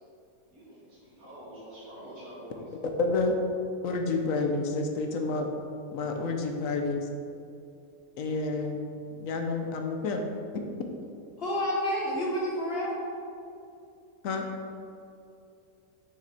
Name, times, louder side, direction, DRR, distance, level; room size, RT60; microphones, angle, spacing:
voice 1, 0.5-2.7, equal, 70° right, -8 dB, 2.0 m, -46 dB
voice 2, 3.0-3.4 3.8-5.5 5.9-7.1 8.2-8.8 9.2-10.2 14.2-14.5, left 3 dB, 65° left, 3 dB, 1.0 m, -29 dB
voice 3, 11.4-12.9, equal, 45° left, -5 dB, 1.3 m, -29 dB
6.0 x 6.0 x 4.2 m, 2.6 s
omnidirectional pair, 1.6 m